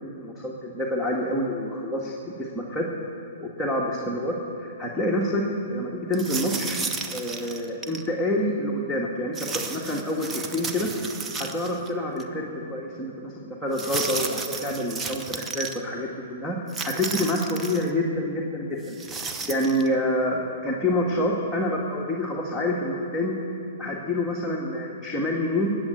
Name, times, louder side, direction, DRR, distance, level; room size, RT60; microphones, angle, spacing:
voice 1, 0.0-2.9 3.4-6.8 7.1-10.9 11.3-13.3 13.6-19.0 19.5-23.4 23.8-25.8, left 1 dB, 5° left, -5 dB, 1.7 m, -27 dB
sound 1, 6.1-8.1 9.3-11.9 12.2-12.3 13.7-15.8 16.7-17.9 18.8-19.9, right 4 dB, 15° right, 0.8 m, -33 dB
19.5 x 7.6 x 8.2 m, 2.6 s
hypercardioid pair, 120°, 0 cm